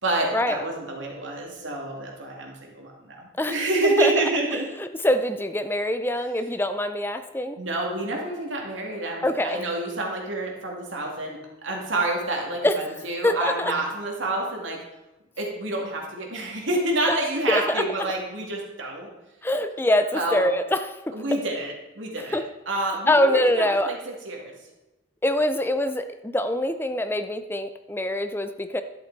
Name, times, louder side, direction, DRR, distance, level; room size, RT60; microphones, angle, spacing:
voice 1, 0.0-4.7 7.6-14.8 15.4-19.1 20.1-20.5 21.1-22.4 22.7-24.0 24.2-24.5, right 2 dB, 80° right, 0 dB, 2.3 m, -28 dB
voice 2, 4.8-7.6 9.2-9.6 12.6-12.8 13.2-13.7 17.1-17.2 17.5-17.8 19.4-21.0 22.3-22.4 23.1-23.9 25.2-28.8, left 1 dB, 10° left, 9 dB, 0.4 m, -24 dB
11.5 x 8.0 x 4.1 m, 1.0 s
head